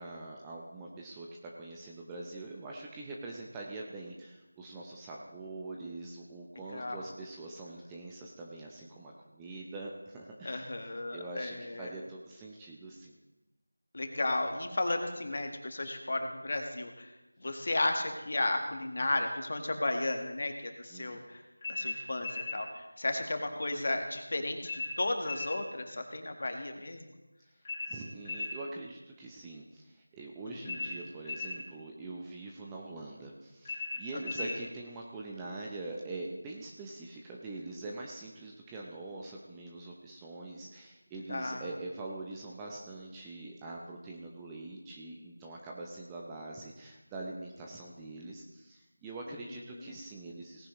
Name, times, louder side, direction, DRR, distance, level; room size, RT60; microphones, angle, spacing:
voice 1, 0.0-13.2 20.9-21.3 27.9-50.7, right 2 dB, 10° right, -2 dB, 0.7 m, -44 dB
voice 2, 6.7-7.1 10.4-11.9 13.9-17.1 17.4-21.4 21.7-27.1 30.5-30.9 34.1-34.6 41.3-41.7 49.7-49.9, left 2 dB, 50° left, 5 dB, 1.5 m, -34 dB
sound 1, 21.6-22.6 24.6-25.6 27.6-28.6 30.6-31.6 33.6-34.6, left 3 dB, 25° left, 3.3 m, -37 dB
18.0 x 10.0 x 3.1 m, 1.0 s
figure-of-eight pair, 170°, 0 cm